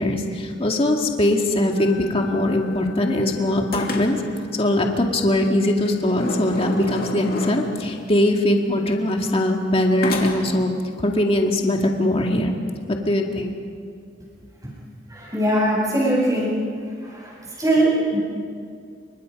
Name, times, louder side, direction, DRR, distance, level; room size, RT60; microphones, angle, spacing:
voice 1, 0.0-4.2 4.5-10.7 11.0-12.5 12.9-13.5, left 1 dB, 30° left, 2 dB, 2.1 m, -21 dB
sound 1, 1.8-3.2 3.7-4.4 5.8-7.9 10.0-10.7, left 2 dB, 50° left, 2.7 m, -31 dB
voice 2, 15.1-16.5 17.0-18.2, right 1 dB, 20° right, -5 dB, 8.0 m, -21 dB
28.5 x 25.0 x 5.3 m, 2.3 s
head